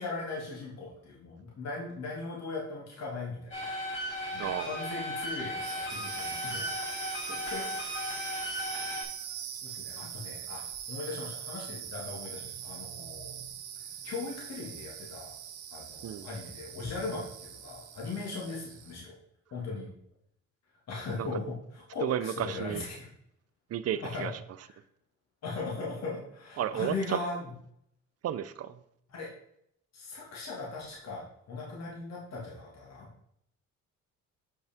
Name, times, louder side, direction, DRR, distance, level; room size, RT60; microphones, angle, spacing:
voice 1, 0.0-6.7 7.3-7.9 9.6-13.3 14.0-15.4 15.7-19.2 19.5-19.9 20.9-23.1 24.0-24.3 24.7-24.8 25.4-27.5 29.1-29.3 29.9-33.1, left 3 dB, 60° left, -3 dB, 1.9 m, -39 dB
sound 1, 3.5-9.0, left 1 dB, 40° left, 3.0 m, -36 dB
sound 2, 5.5-19.0, right 9 dB, 85° right, 1.0 m, -42 dB
voice 2, 22.0-22.8 23.7-24.3 26.6-26.9 28.2-28.7, right 10 dB, 55° right, 13 dB, 0.6 m, -32 dB
7.8 x 5.4 x 3.5 m, 0.74 s
cardioid pair, 90°, 30 cm